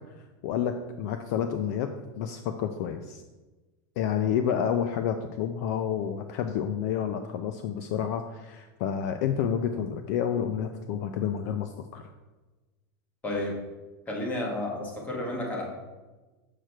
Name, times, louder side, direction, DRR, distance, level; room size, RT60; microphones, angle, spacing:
voice 1, 0.4-3.2 4.0-12.1, left 8 dB, 50° left, 7 dB, 0.4 m, -29 dB
voice 2, 13.2-13.6 14.1-15.7, left 1 dB, 15° left, 0 dB, 1.3 m, -31 dB
6.6 x 6.2 x 4.4 m, 1.2 s
supercardioid pair, 175°, 11 cm